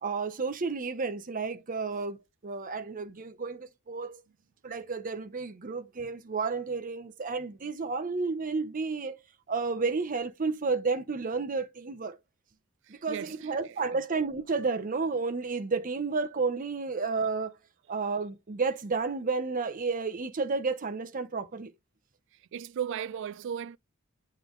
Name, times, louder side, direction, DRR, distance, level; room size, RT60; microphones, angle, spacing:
voice 1, 0.0-4.2 4.6-9.2 9.5-12.2 12.9-17.5 17.9-21.7, right 4 dB, 40° right, 0.7 m, -31 dB
voice 2, 12.9-13.5 22.5-23.8, right 8 dB, 60° right, 0.3 m, -36 dB
8.3 x 3.2 x 3.8 m
head